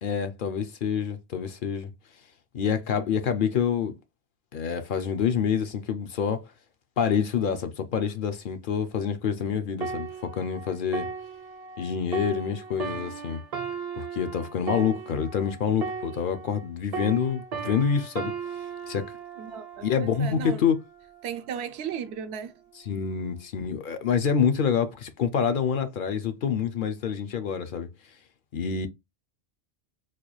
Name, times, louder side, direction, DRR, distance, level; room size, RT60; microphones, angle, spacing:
voice 1, 0.0-1.9 2.5-3.9 4.5-6.5 7.0-11.1 11.8-13.4 14.0-18.3 18.9-19.0 19.8-20.8 22.9-27.9 28.5-28.9, left 7 dB, 60° left, 0.7 m, -27 dB
sound 1, 9.8-16.7 16.9-20.5 21.2-21.4, right 5 dB, 45° right, 0.5 m, -36 dB
voice 2, 19.4-20.7 21.2-22.5, right 8 dB, 85° right, 0.8 m, -35 dB
4.1 x 2.3 x 3.0 m
omnidirectional pair, 1.1 m